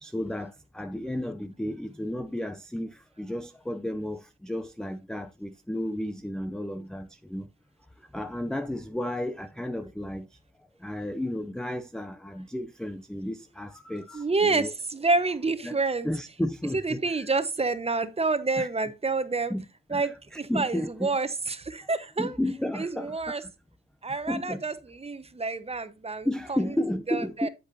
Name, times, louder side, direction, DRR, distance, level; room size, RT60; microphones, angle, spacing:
voice 1, 0.0-7.5 8.0-10.4 10.8-14.7 15.6-15.8 16.0-17.3 18.6-18.7 19.5-19.6 19.9-21.1 22.2-23.5 24.1-24.6 26.2-27.5, left 1 dB, ahead, 0.5 m, -33 dB
voice 2, 14.1-16.1 16.7-19.5 19.9-22.4 22.7-23.4 24.0-26.8 27.1-27.5, right 3 dB, 20° right, 1.1 m, -28 dB
8.4 x 8.2 x 2.7 m
cardioid pair, 90°, 30 cm